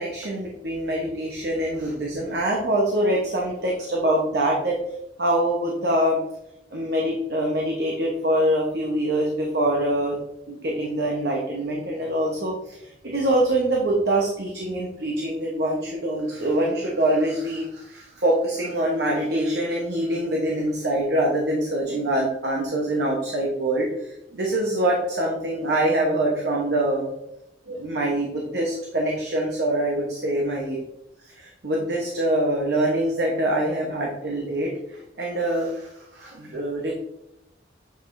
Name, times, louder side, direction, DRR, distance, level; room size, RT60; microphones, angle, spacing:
voice 1, 0.0-4.8 5.2-6.2 6.7-10.2 10.5-27.1 27.7-30.8 31.2-36.9, right 1 dB, 60° right, -2 dB, 1.0 m, -24 dB
7.8 x 4.8 x 2.6 m, 0.85 s
head